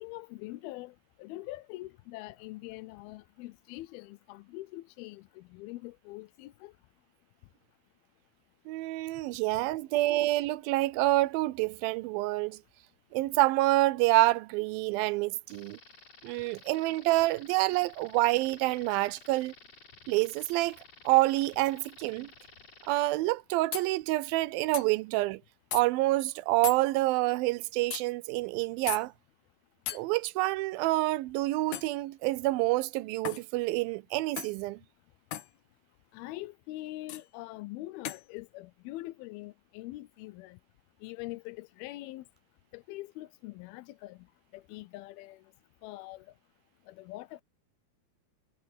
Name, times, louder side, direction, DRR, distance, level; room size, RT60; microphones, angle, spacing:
voice 1, 0.0-6.7 36.1-40.6 41.0-42.3 42.7-44.3 44.5-45.4 45.8-46.3 46.9-47.4, left 18 dB, 85° left, 2.6 m, -43 dB
voice 2, 8.7-12.6 13.1-15.8 16.2-19.5 20.1-20.8 21.1-22.3 22.9-25.4 25.7-29.1 29.9-34.8, right 19 dB, 80° right, 2.3 m, -27 dB
sound 1, 15.5-23.1, left 3 dB, 40° left, 6.8 m, -54 dB
sound 2, 23.2-23.3 23.7-23.9 24.7-24.9 25.7-25.8 26.6-26.8 27.9-28.0 28.9-29.0 29.9-30.0 31.7-32.0 33.2-33.5 34.4-34.6 35.3-35.5 37.1-37.2 38.0-38.2, left 13 dB, 70° left, 1.8 m, -36 dB
omnidirectional pair, 4.3 m